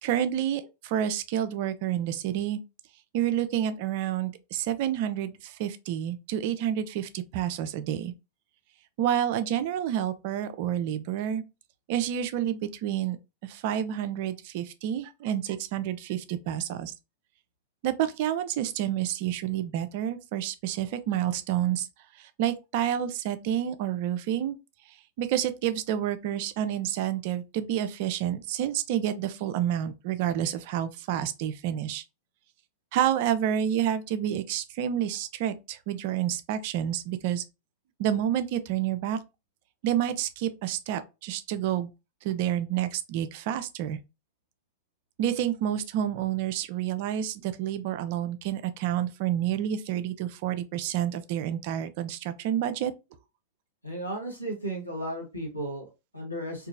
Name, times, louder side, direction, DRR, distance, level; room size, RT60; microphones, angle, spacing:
voice 1, 0.0-2.6 3.1-8.1 9.0-11.4 11.9-13.2 13.4-16.9 17.8-21.9 22.2-24.6 25.2-32.0 32.9-37.4 38.0-39.2 39.8-41.9 42.2-44.0 45.2-52.9, right 10 dB, 50° right, 0.3 m, -29 dB
voice 2, 53.8-56.7, right 1 dB, 85° left, 1.0 m, -35 dB
2.7 x 2.4 x 2.5 m
figure-of-eight pair, 90°, 0 cm